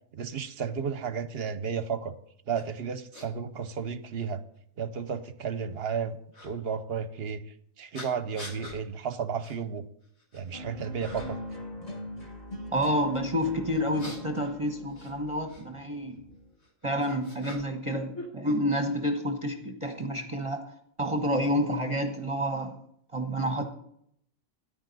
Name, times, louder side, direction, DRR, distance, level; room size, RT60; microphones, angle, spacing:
voice 1, 0.1-2.2 2.5-4.4 4.8-6.2 6.4-7.4 7.8-9.9 10.3-11.4, right 6 dB, 55° right, 12 dB, 0.9 m, -33 dB
sound 1, 2.5-2.6 3.1-3.3 4.2-4.3 6.3-6.5 7.9-8.8 9.4-9.6 10.0-10.5 11.0-11.5 13.7-15.6 16.6-17.9 18.1-19.0, left 1 dB, 90° left, 2.9 m, -45 dB
sound 2, 10.5-16.5, left 1 dB, 30° left, 2.1 m, -41 dB
voice 2, 12.7-16.2 16.8-20.6 21.0-22.8 23.1-23.6, equal, 25° right, 3 dB, 1.0 m, -29 dB
13.5 x 10.5 x 4.0 m, 0.70 s
omnidirectional pair, 1.4 m